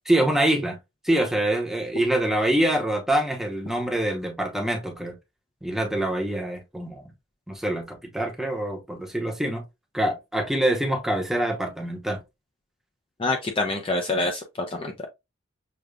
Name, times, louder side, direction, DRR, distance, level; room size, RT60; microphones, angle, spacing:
voice 1, 0.1-0.8 1.0-5.2 5.6-7.1 7.5-9.6 9.9-12.2, right 1 dB, ahead, 0.9 m, -25 dB
voice 2, 13.2-15.1, left 2 dB, 25° left, 0.5 m, -26 dB
6.5 x 2.3 x 2.3 m
head